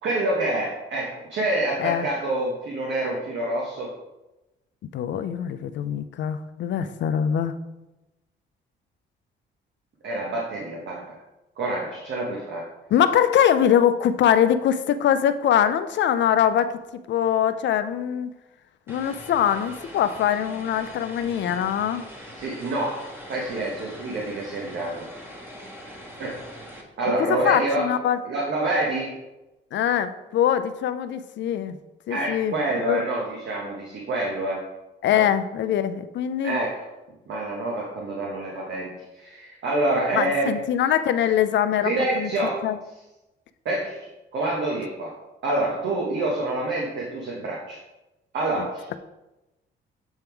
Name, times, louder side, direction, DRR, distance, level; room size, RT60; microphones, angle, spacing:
voice 1, 0.0-3.9 10.0-11.1 11.6-12.7 21.4-21.5 22.3-25.1 26.2-26.4 27.0-27.9 28.2-29.2 32.1-34.7 35.1-35.2 36.4-36.8 37.3-40.6 41.8-42.7 43.6-47.8 48.3-49.0, right 2 dB, 65° right, -2 dB, 1.3 m, -27 dB
voice 2, 4.9-7.6 12.9-16.8 17.1-18.3 18.9-22.1 27.3-28.2 29.7-31.8 32.1-33.0 35.0-36.6 40.1-42.3 42.6-42.8, left 9 dB, 65° left, 11 dB, 0.5 m, -23 dB
Vehicle, 18.9-26.8, equal, 10° right, 1.4 m, -42 dB
7.9 x 3.5 x 4.5 m, 1.0 s
cardioid pair, 90°, 20 cm